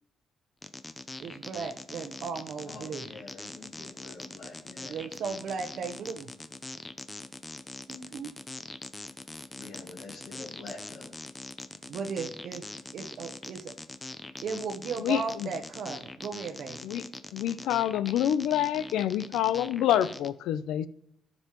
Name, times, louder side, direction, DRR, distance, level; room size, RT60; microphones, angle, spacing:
sound 1, 0.6-20.3, left 2 dB, 20° left, 0.6 m, -42 dB
voice 1, 1.2-3.0 4.8-6.3 7.9-8.3 11.9-13.7 14.4-16.9, right 5 dB, 65° right, 0.8 m, -36 dB
voice 2, 2.6-5.0 9.5-11.2, left 3 dB, 55° left, 1.8 m, -46 dB
voice 3, 15.0-15.5 16.8-17.1 17.3-20.9, left 11 dB, 90° left, 0.5 m, -27 dB
14.5 x 5.4 x 3.0 m
cardioid pair, 100°, 0 cm